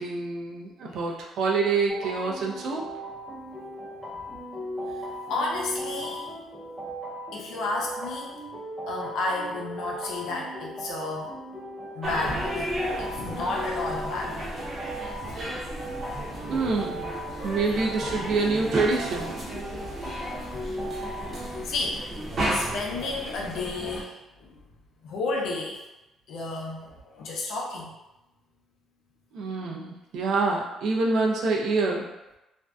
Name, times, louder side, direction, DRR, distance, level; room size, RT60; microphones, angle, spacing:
voice 1, 0.0-2.8 16.5-17.0 17.4-19.3 29.3-32.1, right 3 dB, 70° right, 0 dB, 0.4 m, -26 dB
sound 1, 1.9-21.6, equal, 10° right, 0.6 m, -37 dB
voice 2, 5.3-6.3 7.3-8.3 8.9-11.3 11.9-14.7 16.4-16.5 20.5-22.1 22.5-24.5 25.0-25.8 26.3-27.9, left 3 dB, 75° left, -1 dB, 0.5 m, -32 dB
sound 2, 12.0-24.0, right 1 dB, 45° right, 0.8 m, -34 dB
2.5 x 2.1 x 2.3 m, 0.97 s
cardioid pair, 100°, 0 cm